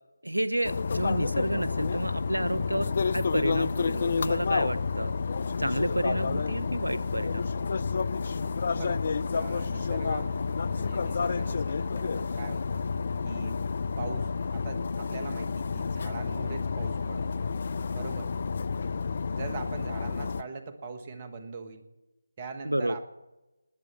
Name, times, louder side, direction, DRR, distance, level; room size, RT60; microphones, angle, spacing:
voice 1, 0.2-5.1 5.6-7.4 22.6-23.0, right 1 dB, 90° right, 14 dB, 0.6 m, -30 dB
sound 1, 0.6-20.4, left 5 dB, 40° left, 0.4 m, -30 dB
sound 2, 2.1-12.6, left 1 dB, 5° left, 3.9 m, -54 dB
voice 2, 9.3-10.3 10.6-12.9 13.2-13.6 14.0-17.4 17.9-18.3 19.3-21.8 22.4-23.0, right 4 dB, 25° right, 7 dB, 1.5 m, -41 dB
19.5 x 8.2 x 7.5 m, 1.0 s
figure-of-eight pair, 155°, 0 cm